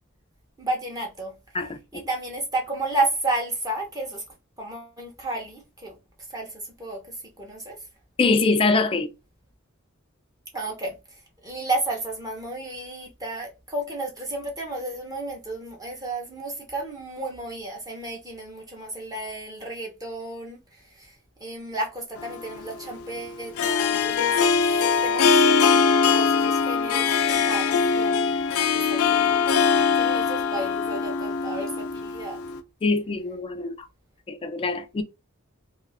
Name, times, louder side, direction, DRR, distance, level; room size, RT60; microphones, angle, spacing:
voice 1, 0.6-1.3 1.6-4.2 4.6-6.0 6.3-7.0 7.4-7.8 10.5-10.9 11.4-21.2 21.4-28.2 28.5-29.4 29.9-32.4, right 2 dB, 15° right, 0.7 m, -32 dB
voice 2, 8.2-9.1 32.8-33.7 34.3-35.0, left 3 dB, 25° left, 0.3 m, -23 dB
Harp, 22.2-32.6, left 5 dB, 90° left, 0.4 m, -22 dB
2.4 x 2.4 x 3.2 m
head